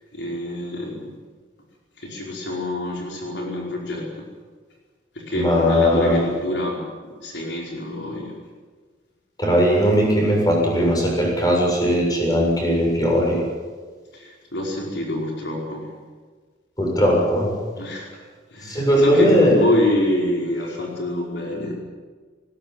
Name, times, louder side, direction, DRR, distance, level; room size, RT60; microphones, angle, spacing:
voice 1, 0.1-1.1 2.0-4.3 5.1-8.3 14.1-15.9 17.8-18.1 18.5-21.7, left 1 dB, 70° left, -1 dB, 5.0 m, -26 dB
voice 2, 5.3-6.3 9.4-13.4 16.8-17.5 18.6-19.5, equal, 20° left, -1 dB, 7.5 m, -18 dB
21.0 x 19.0 x 9.3 m, 1.5 s
head